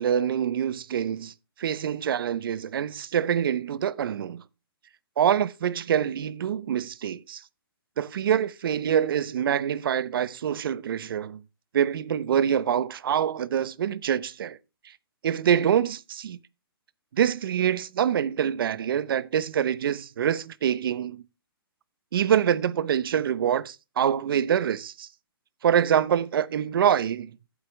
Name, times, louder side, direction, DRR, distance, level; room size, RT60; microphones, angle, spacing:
voice 1, 0.0-1.3 1.6-4.4 5.2-7.4 8.0-11.4 11.7-14.6 15.2-16.4 17.1-21.2 22.1-25.1 25.6-27.3, right 9 dB, 65° right, 0.9 m, -25 dB
14.0 x 8.2 x 3.3 m
hypercardioid pair, 155°, 13 cm